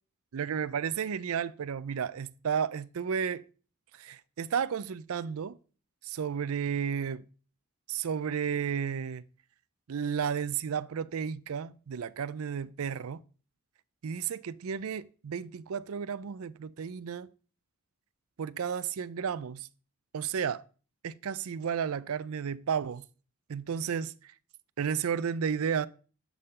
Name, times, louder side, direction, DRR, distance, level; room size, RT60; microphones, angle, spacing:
voice 1, 0.3-3.5 4.0-5.6 6.0-7.2 7.9-9.2 9.9-13.2 14.0-17.3 18.4-19.7 20.1-20.6 21.0-23.0 23.5-24.1 24.8-25.9, right 7 dB, 70° right, 0.4 m, -32 dB
11.0 x 3.7 x 6.5 m
head